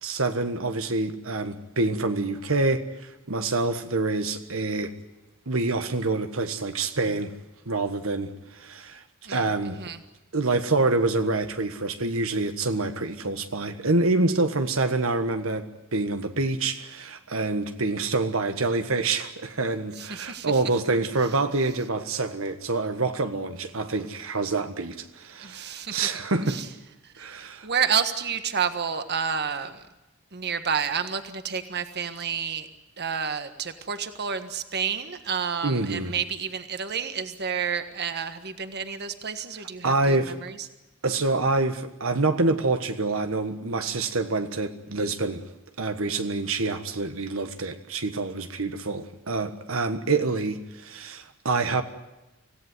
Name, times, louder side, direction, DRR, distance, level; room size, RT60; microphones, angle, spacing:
voice 1, 0.0-4.9 5.5-7.3 7.7-9.0 9.3-9.8 10.3-26.6 27.2-27.7 35.6-36.1 39.8-40.4 41.0-45.4 45.8-51.8, right 3 dB, 75° right, 1.5 m, -26 dB
voice 2, 9.2-10.0 19.9-20.6 25.4-26.1 26.5-26.7 27.0-29.9 30.3-32.7 33.0-40.7, right 7 dB, 50° right, 1.5 m, -30 dB
26.0 x 17.0 x 9.6 m
head